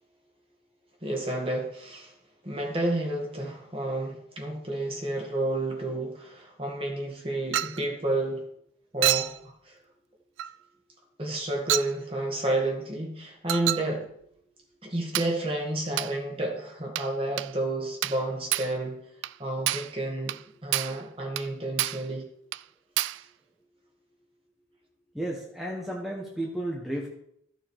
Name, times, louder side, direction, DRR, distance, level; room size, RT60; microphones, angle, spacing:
voice 1, 1.0-2.1 2.4-8.4 8.9-9.8 11.2-14.1 14.8-19.0 19.4-20.4 20.6-22.2, right 1 dB, 30° right, 1 dB, 2.1 m, -30 dB
Chink clink, 7.5-7.8 9.0-9.4 10.4-10.6 11.7-12.0 13.5-13.9 15.1-15.4 16.0-16.2 17.0-17.1 17.4-17.5 18.0-18.2 18.5-18.8 19.2-19.4 19.7-19.9 20.3-20.4 20.7-21.0 21.4-21.5 21.8-22.1 22.5-22.6 23.0-23.2, right 15 dB, 80° right, 0.3 m, -28 dB
voice 2, 25.1-27.1, right 1 dB, ahead, -2 dB, 1.2 m, -33 dB
14.0 x 6.6 x 4.8 m, 0.71 s
head